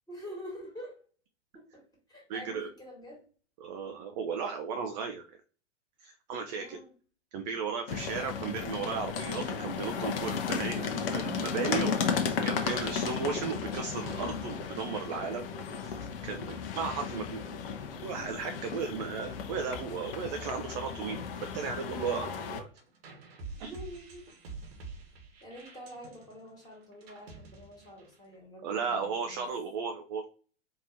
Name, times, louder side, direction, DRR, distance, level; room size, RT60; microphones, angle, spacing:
voice 1, 0.1-1.0 1.5-3.3 6.4-6.9 11.5-12.2 15.1-15.8 18.8-19.1 23.6-24.3 25.4-29.5, equal, 10° left, -3 dB, 1.7 m, -47 dB
voice 2, 2.3-2.7 3.6-5.2 6.0-6.8 7.3-11.9 12.4-15.4 15.8-16.0 16.2-17.4 18.0-21.2 21.5-22.7 23.6-23.7 28.6-30.2, right 6 dB, 35° right, 5 dB, 0.5 m, -35 dB
sound 1, 7.9-22.6, left 6 dB, 50° left, 0.8 m, -34 dB
sound 2, 20.9-28.3, right 4 dB, 55° right, 1.2 m, -48 dB
4.5 x 2.9 x 2.7 m, 0.40 s
figure-of-eight pair, 100°, 36 cm